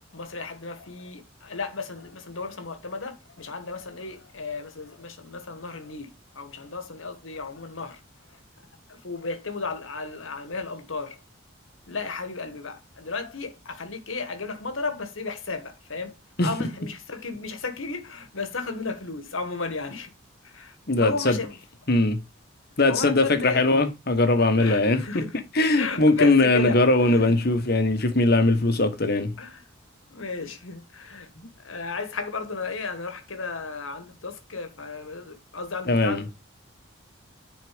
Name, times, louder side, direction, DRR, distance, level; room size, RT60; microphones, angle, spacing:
voice 1, 0.0-8.0 8.9-11.2 11.9-16.1 16.4-20.1 20.4-21.6 22.9-23.7 24.6-25.4 25.7-27.4 29.4-29.6 30.1-31.3 31.6-36.3, left 4 dB, 80° left, 1.4 m, -34 dB
voice 2, 20.9-21.4 21.9-22.2 22.8-25.0 25.5-29.3 35.9-36.2, left 2 dB, 50° left, 1.2 m, -20 dB
9.8 x 4.1 x 5.0 m
head